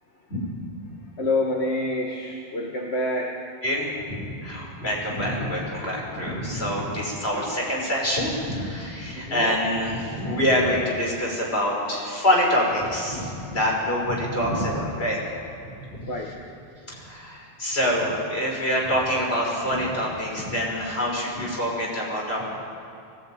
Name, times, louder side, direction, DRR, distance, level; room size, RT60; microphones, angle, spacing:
voice 1, 1.2-3.5 9.0-9.6 16.1-16.5, left 2 dB, 90° left, 0 dB, 1.9 m, -28 dB
voice 2, 3.6-15.2 15.6-16.1 16.9-22.4, equal, 70° left, -3 dB, 6.2 m, -26 dB
21.5 x 17.5 x 9.3 m, 2.6 s
omnidirectional pair, 1.1 m